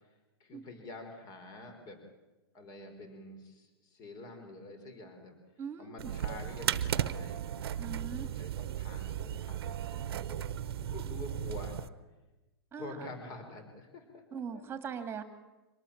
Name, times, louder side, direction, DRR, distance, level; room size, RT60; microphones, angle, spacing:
voice 1, 0.4-2.0 2.5-5.4 5.8-7.4 8.0-10.4 10.8-11.8 12.7-14.6, left 2 dB, 30° left, 6 dB, 5.0 m, -47 dB
voice 2, 5.6-6.1 7.8-8.3 12.7-13.0 14.3-15.2, right 7 dB, 20° right, 9 dB, 2.3 m, -40 dB
sound 1, 6.0-11.9, right 10 dB, 75° right, 1.1 m, -35 dB
25.0 x 19.0 x 7.4 m, 1.1 s
hypercardioid pair, 135°, 13 cm